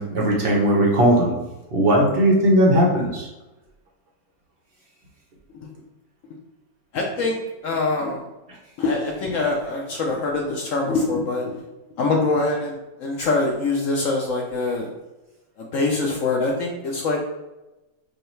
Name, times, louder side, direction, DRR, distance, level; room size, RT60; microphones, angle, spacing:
voice 1, 0.0-1.3 1.7-3.3, right 1 dB, 55° right, -2 dB, 0.6 m, -18 dB
voice 2, 6.9-7.4 7.6-8.2 8.8-11.5 12.0-14.9 15.6-17.2, left 3 dB, 65° left, 0 dB, 0.8 m, -24 dB
5.4 x 2.1 x 3.1 m, 1.0 s
omnidirectional pair, 1.8 m